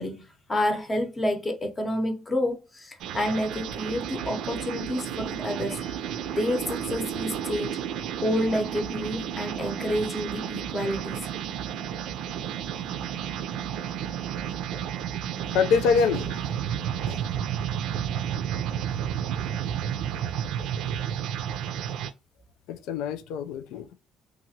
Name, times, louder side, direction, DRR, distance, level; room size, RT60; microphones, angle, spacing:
voice 1, 0.0-6.0 6.4-7.8 8.2-11.3, left 1 dB, 20° left, 0.8 m, -29 dB
sound 1, 3.0-22.1, right 9 dB, 75° right, 0.4 m, -32 dB
voice 2, 15.5-16.5 17.1-17.3 22.7-23.9, left 6 dB, 85° left, 0.4 m, -25 dB
2.8 x 2.4 x 2.7 m
cardioid pair, 130°, 0 cm